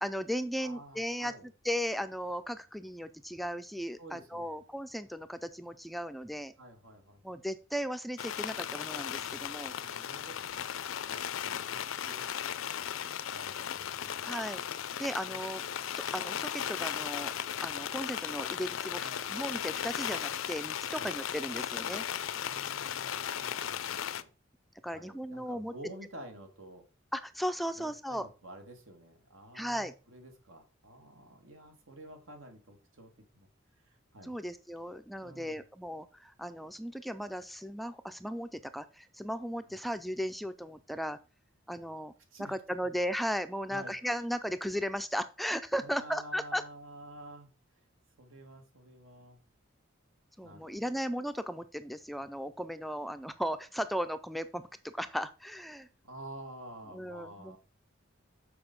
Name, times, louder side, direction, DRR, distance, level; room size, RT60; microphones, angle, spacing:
voice 1, 0.0-1.3 1.6-6.5 7.2-9.7 14.2-14.6 15.0-15.7 16.0-17.3 17.6-22.1 24.8-25.7 27.1-28.3 29.5-29.9 34.2-41.2 41.7-42.1 42.4-46.6 50.4-55.9 56.9-57.6, equal, ahead, 10 dB, 0.3 m, -36 dB
voice 2, 0.6-1.5 4.0-4.6 6.6-7.4 9.8-10.4 11.1-12.3 13.3-14.3 15.3-15.4 19.0-19.2 20.9-21.1 22.3-24.3 24.9-26.8 27.7-33.5 33.8-34.4 35.2-35.6 39.7-39.8 42.3-42.5 43.7-43.9 45.8-47.5 48.2-49.4 50.4-51.0 56.0-57.6, right 1 dB, 85° right, 5 dB, 1.9 m, -50 dB
sound 1, 8.2-24.2, left 9 dB, 85° left, 0.5 m, -36 dB
6.9 x 5.1 x 5.3 m, 0.34 s
head